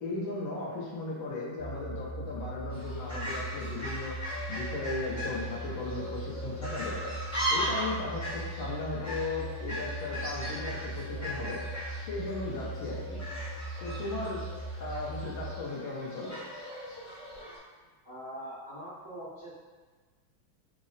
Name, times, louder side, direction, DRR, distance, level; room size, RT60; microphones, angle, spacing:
voice 1, 0.0-4.2 4.5-11.6 12.0-13.2 13.8-14.4 14.8-16.4, left 3 dB, 75° left, -5 dB, 1.5 m, -36 dB
sound 1, 1.6-15.6, right 1 dB, 80° right, 0.8 m, -40 dB
Fowl, 2.7-17.6, equal, 10° left, 0.9 m, -38 dB
voice 2, 18.0-19.5, equal, 35° right, -13 dB, 0.8 m, -42 dB
3.9 x 2.0 x 3.9 m, 1.4 s
omnidirectional pair, 2.3 m